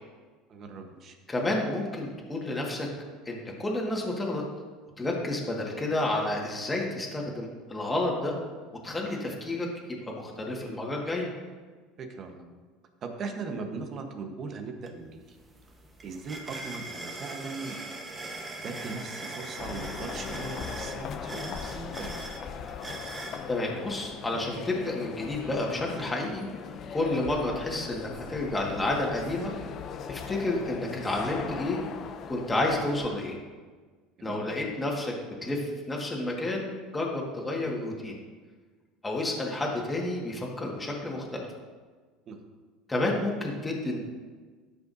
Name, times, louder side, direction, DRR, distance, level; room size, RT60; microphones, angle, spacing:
voice 1, 0.5-1.2 12.0-12.5 13.0-15.4 16.0-17.7 18.6-22.2 34.2-34.6 42.3-42.4, right 4 dB, 45° right, 5 dB, 1.2 m, -39 dB
voice 2, 1.3-2.9 3.3-4.4 5.0-8.3 8.8-9.7 10.1-11.3 23.5-26.4 26.9-29.5 30.1-31.8 32.3-33.4 34.2-38.2 39.0-41.4 42.9-44.0, left 2 dB, 15° left, -2 dB, 1.8 m, -30 dB
sound 1, 14.9-15.0 15.3-23.4, right 2 dB, 20° right, 1.2 m, -41 dB
sound 2, 19.6-33.1, left 7 dB, 45° left, 0.6 m, -39 dB
13.0 x 5.7 x 2.8 m, 1.4 s
supercardioid pair, 100°, 0 cm